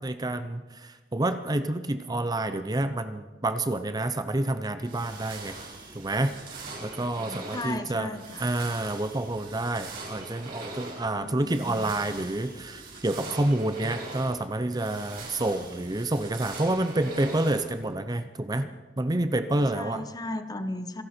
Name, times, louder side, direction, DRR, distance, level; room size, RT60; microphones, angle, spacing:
voice 1, 0.0-5.6 5.9-8.1 8.4-18.7 19.0-20.0, right 1 dB, 20° right, 10 dB, 0.7 m, -28 dB
sound 1, 4.8-18.0, right 2 dB, 55° right, 6.2 m, -42 dB
voice 2, 7.2-8.4 11.0-11.9 18.5-18.7 19.5-21.0, left 1 dB, 20° left, 9 dB, 1.1 m, -36 dB
26.5 x 11.5 x 4.4 m, 1.3 s
head